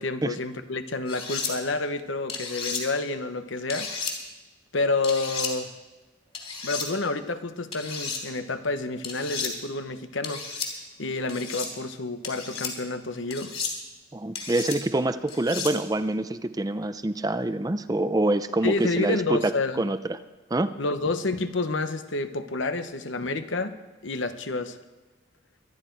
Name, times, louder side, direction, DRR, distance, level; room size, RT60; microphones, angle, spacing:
voice 1, 0.0-4.0 4.7-5.7 6.6-10.4 11.0-13.5 18.6-19.8 20.8-23.7 24.0-24.8, left 3 dB, 80° left, 9 dB, 1.0 m, -29 dB
sound 1, 1.1-1.5 2.3-2.8 3.7-4.1 5.0-5.5 6.3-6.9 7.7-8.2 9.0-9.5 10.2-10.7 11.3-11.7 12.2-12.7 13.3-13.7 14.3-14.8 15.3-15.7, left 5 dB, 30° left, 2.7 m, -33 dB
voice 2, 14.1-20.2 20.5-20.7, right 2 dB, 20° right, 11 dB, 0.5 m, -26 dB
24.0 x 10.0 x 4.6 m, 1.2 s
head